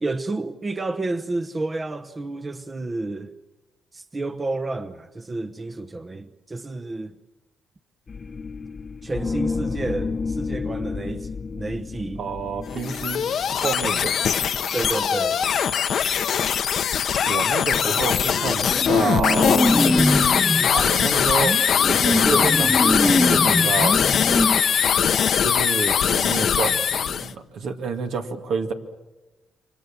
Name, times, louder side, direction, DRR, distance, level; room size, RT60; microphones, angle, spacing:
voice 1, 0.0-3.3 3.9-7.1 9.0-11.3 11.6-12.2 14.7-15.4, right 2 dB, 25° right, 0.9 m, -30 dB
sound 1, 8.1-14.1, left 4 dB, 35° left, 1.0 m, -31 dB
voice 2, 12.2-14.2 17.2-19.7 20.7-21.6 21.9-24.0 25.4-28.7, right 5 dB, 70° right, 2.2 m, -28 dB
sound 2, 12.7-27.3, left 8 dB, 60° left, 0.9 m, -21 dB
sound 3, 17.8-18.0 18.3-20.7 21.4-24.6, left 1 dB, 5° left, 1.3 m, -23 dB
28.5 x 24.5 x 7.3 m
cardioid pair, 90°, 0 cm